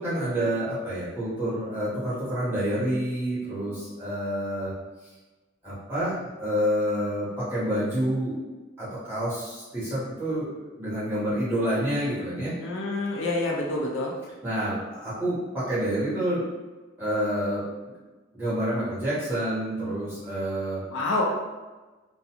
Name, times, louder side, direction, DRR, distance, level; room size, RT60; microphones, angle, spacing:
voice 1, 0.0-4.7 5.6-8.3 8.8-12.5 14.4-16.4 17.0-17.6 18.3-20.8, equal, 10° right, -12 dB, 1.1 m, -28 dB
voice 2, 12.6-14.1 20.8-21.2, left 2 dB, 75° left, -2 dB, 0.5 m, -27 dB
2.4 x 2.3 x 2.8 m, 1.2 s
head